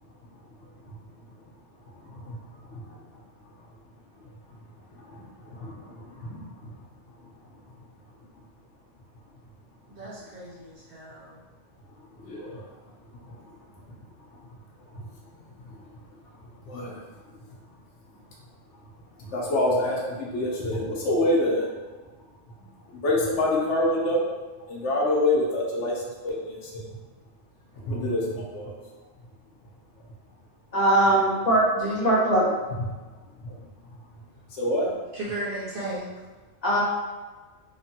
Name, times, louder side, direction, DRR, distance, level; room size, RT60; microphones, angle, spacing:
voice 1, 2.0-2.4 2.7-2.9 5.0-6.7 12.1-12.6 13.3-13.4 13.9-14.0 14.9-15.0 15.6-15.8 16.6-17.0 17.3-17.4 19.2-21.7 22.9-24.3 24.7-26.8 27.8-28.8 33.4-33.6 34.5-34.9, left 1 dB, 80° left, -3 dB, 1.0 m, -27 dB
voice 2, 9.9-11.4 31.7-32.1 35.1-36.1, right 1 dB, 55° right, -8 dB, 0.9 m, -34 dB
voice 3, 30.7-32.4 36.6-36.8, right 1 dB, 40° left, -9 dB, 0.9 m, -21 dB
3.1 x 2.1 x 2.7 m, 1.3 s
omnidirectional pair, 1.2 m